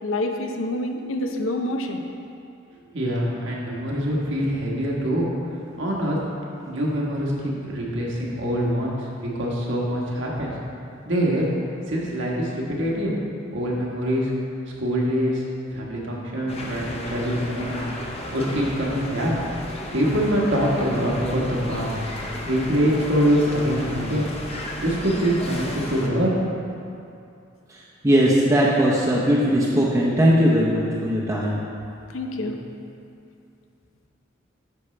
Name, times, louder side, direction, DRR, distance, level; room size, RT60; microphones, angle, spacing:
voice 1, 0.0-2.0 32.1-32.6, left 1 dB, 85° left, 3 dB, 0.7 m, -27 dB
voice 2, 2.9-5.3 5.8-6.2 6.6-10.6 11.0-11.5 11.9-13.1 13.5-14.3 14.8-15.4 15.7-17.9 18.3-19.3 19.9-22.0 22.4-24.3 24.8-26.3 32.4-32.5, equal, 65° right, -3 dB, 1.4 m, -24 dB
sound 1, 16.5-26.1, left 1 dB, 30° left, 0.7 m, -34 dB
voice 3, 27.7-31.6, equal, 15° right, -7 dB, 0.7 m, -19 dB
9.6 x 6.0 x 3.3 m, 2.6 s
head